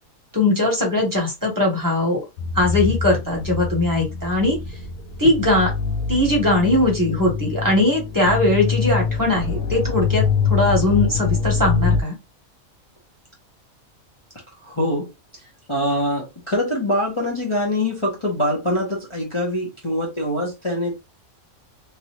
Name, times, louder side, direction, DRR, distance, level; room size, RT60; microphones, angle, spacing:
voice 1, 0.3-2.2 2.5-4.6 5.2-5.7 6.1-12.2, left 2 dB, 15° right, 1.2 m, -20 dB
sound 1, 2.4-12.0, left 5 dB, 85° left, 1.1 m, -24 dB
voice 2, 14.6-15.1 15.7-21.0, left 1 dB, 25° left, 0.9 m, -24 dB
3.1 x 2.6 x 2.9 m
omnidirectional pair, 1.5 m